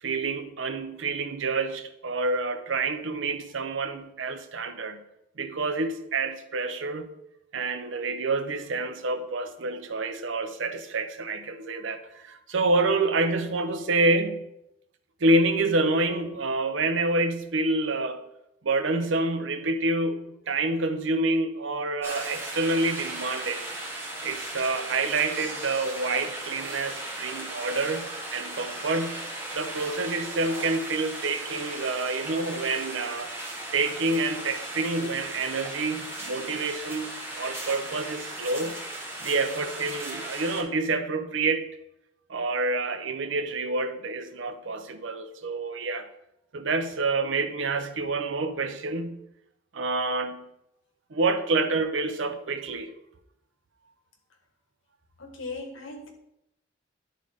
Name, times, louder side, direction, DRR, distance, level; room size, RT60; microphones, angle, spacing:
voice 1, 0.0-5.0 5.4-7.1 7.5-14.4 15.2-18.2 18.6-23.7 24.2-29.2 29.5-33.3 33.7-38.8 39.2-41.7 42.3-46.1 46.5-49.2 49.7-50.4 51.1-52.9, right 3 dB, 70° right, 0.6 m, -28 dB
sound 1, 22.0-40.6, right 1 dB, 15° right, 1.2 m, -37 dB
voice 2, 55.2-56.1, left 3 dB, 90° left, 1.3 m, -38 dB
11.0 x 3.8 x 3.5 m
head